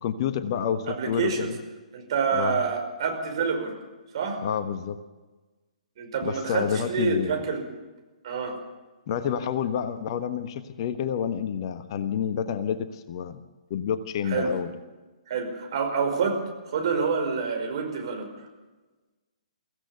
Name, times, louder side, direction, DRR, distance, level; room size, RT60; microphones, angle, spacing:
voice 1, 0.0-1.6 2.3-2.6 4.4-5.0 6.2-7.4 9.1-13.4 13.7-14.7, left 8 dB, 40° left, 10 dB, 1.3 m, -29 dB
voice 2, 0.9-1.5 1.9-3.8 4.1-4.4 6.0-7.7 8.2-8.6 14.3-14.6 15.3-18.5, right 5 dB, 50° right, 3 dB, 5.2 m, -27 dB
23.5 x 16.0 x 6.9 m, 1.2 s
figure-of-eight pair, 125°, 4 cm